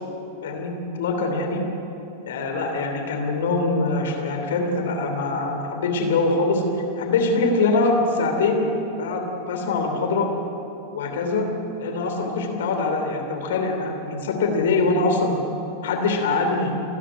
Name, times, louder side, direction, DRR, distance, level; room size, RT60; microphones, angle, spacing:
voice 1, 0.4-1.6 2.3-6.6 7.0-8.7 9.0-10.3 10.9-11.5 11.8-15.4 15.8-16.7, left 3 dB, 60° left, 2 dB, 3.1 m, -23 dB
29.5 x 10.0 x 9.6 m, 2.9 s
figure-of-eight pair, 90°, 0 cm